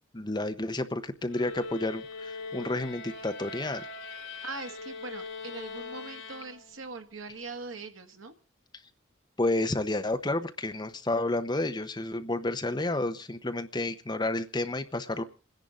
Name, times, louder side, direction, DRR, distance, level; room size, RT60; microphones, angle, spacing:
voice 1, 0.1-3.9 9.4-15.2, left 2 dB, 20° left, 8 dB, 0.9 m, -30 dB
sound 1, 1.3-7.0, left 3 dB, 75° left, 2.7 m, -41 dB
voice 2, 4.4-8.3, right 3 dB, 80° right, 6 dB, 1.6 m, -41 dB
28.5 x 10.5 x 3.7 m, 0.34 s
head